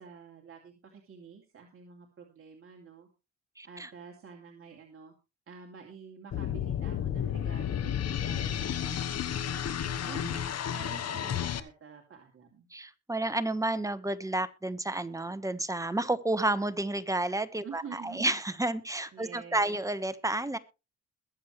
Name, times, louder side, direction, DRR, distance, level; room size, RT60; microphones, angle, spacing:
voice 1, 0.0-3.1 3.6-5.1 5.5-10.2 10.7-12.7 17.6-18.4 19.1-19.8, right 6 dB, 45° right, 1 dB, 2.6 m, -49 dB
voice 2, 3.6-3.9 10.2-10.5 12.7-20.6, right 2 dB, 10° right, 12 dB, 1.2 m, -31 dB
sound 1, 6.3-11.6, left 9 dB, 55° left, 1.2 m, -32 dB
21.5 x 7.6 x 3.2 m, 0.29 s
cardioid pair, 90°, 30 cm